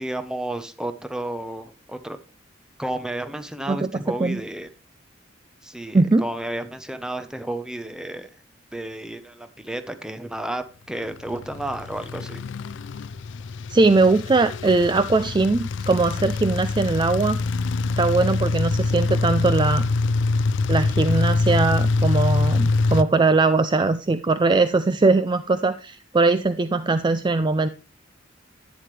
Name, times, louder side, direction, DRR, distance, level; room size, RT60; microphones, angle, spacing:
voice 1, 0.0-2.2 2.8-4.7 5.6-8.3 8.7-12.4, right 1 dB, 5° right, 9 dB, 0.9 m, -32 dB
voice 2, 3.7-4.4 5.9-6.3 13.7-17.4 18.0-19.8 20.7-27.7, right 3 dB, 25° right, 11 dB, 0.4 m, -20 dB
sound 1, 11.1-23.0, left 3 dB, 70° left, 0.4 m, -24 dB
11.0 x 9.4 x 3.3 m, 0.33 s
head